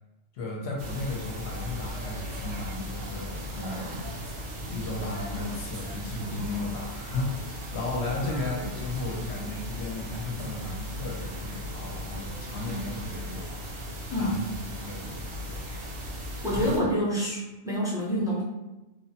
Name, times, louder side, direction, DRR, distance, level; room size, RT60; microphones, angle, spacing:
voice 1, 0.3-3.9 4.7-13.5 14.2-14.5 14.8-15.2 15.5-15.8, left 2 dB, 65° left, -2 dB, 0.8 m, -34 dB
sound 1, 0.8-16.8, equal, 80° right, 1.0 m, -37 dB
voice 2, 16.4-18.4, equal, 5° right, -7 dB, 0.5 m, -27 dB
3.1 x 2.0 x 2.7 m, 1.0 s
omnidirectional pair, 1.2 m